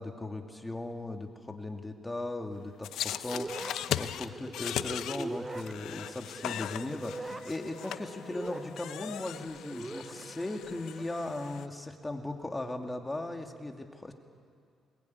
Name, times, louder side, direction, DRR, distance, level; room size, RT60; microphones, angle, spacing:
voice 1, 0.0-14.1, left 2 dB, 15° left, 4 dB, 2.3 m, -38 dB
sound 1, 2.8-11.7, left 11 dB, 80° left, 0.8 m, -39 dB
sound 2, 3.2-11.2, right 2 dB, 20° right, 0.5 m, -43 dB
21.5 x 20.5 x 9.6 m, 2.3 s
cardioid pair, 90°, 0 cm